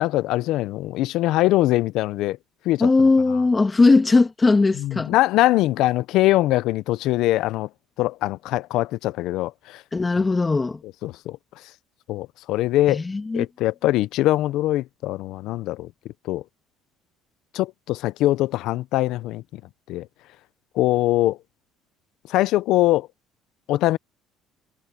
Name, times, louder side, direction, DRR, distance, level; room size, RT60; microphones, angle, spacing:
voice 1, 0.0-2.4 2.6-2.9 4.8-7.7 8.0-9.8 11.0-11.4 12.1-13.0 13.3-15.9 16.3-16.4 17.5-19.6 19.9-20.1 20.8-21.4 22.3-23.1 23.7-24.0, left 16 dB, 65° left, 0.6 m, -22 dB
voice 2, 2.8-5.1 9.9-10.8 12.9-13.5, left 3 dB, 15° left, 2.2 m, -19 dB
cardioid pair, 140°, 0 cm